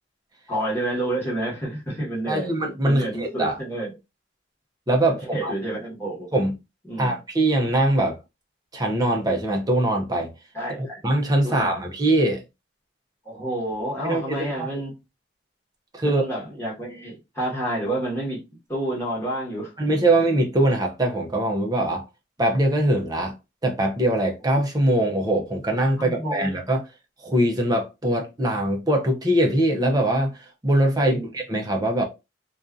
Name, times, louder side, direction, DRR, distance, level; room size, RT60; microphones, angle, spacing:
voice 1, 0.5-2.5 2.8-3.9 5.3-6.3 6.8-7.2 10.5-11.0 11.4-11.8 13.2-14.9 16.0-18.4 18.7-19.7 26.0-26.5 30.9-31.3, right 1 dB, 10° left, 1.2 m, -29 dB
voice 2, 2.3-3.5 4.9-5.5 6.3-6.6 7.0-8.2 8.7-10.3 10.8-12.4 14.0-14.8 15.9-16.3 19.8-22.0 22.4-23.3 23.6-26.8 27.2-32.0, right 1 dB, 20° right, 0.5 m, -22 dB
2.6 x 2.3 x 2.4 m
head